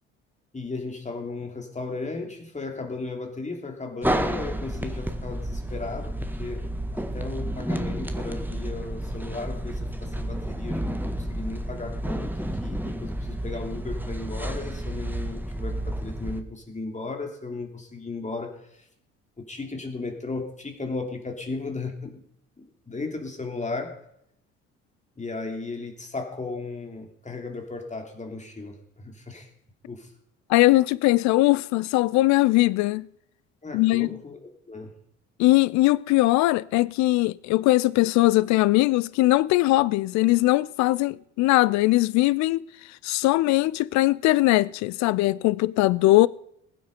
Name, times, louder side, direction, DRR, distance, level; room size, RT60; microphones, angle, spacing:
voice 1, 0.5-12.3 12.6-18.9 19.4-22.2 22.9-24.0 25.2-29.5 29.8-30.1 33.6-34.9, left 3 dB, 20° left, 3.2 m, -35 dB
sound 1, 4.0-16.4, right 1 dB, 5° right, 1.7 m, -31 dB
voice 2, 30.5-33.1 33.7-34.1 35.4-42.6 43.0-46.3, left 19 dB, 50° left, 0.5 m, -20 dB
20.5 x 9.4 x 5.4 m
figure-of-eight pair, 50°, 36 cm